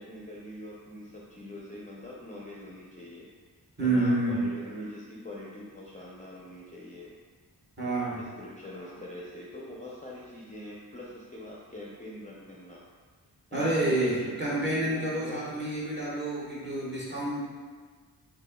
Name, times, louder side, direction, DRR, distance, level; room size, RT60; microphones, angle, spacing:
voice 1, 0.0-3.3 3.8-7.1 7.8-12.8 13.5-15.7, left 1 dB, 20° left, -5 dB, 0.5 m, -43 dB
voice 2, 3.8-4.4 7.8-8.2 13.5-17.4, right 2 dB, 25° right, -7 dB, 1.2 m, -28 dB
4.1 x 3.6 x 2.2 m, 1.5 s
wide cardioid pair, 85°, 40 cm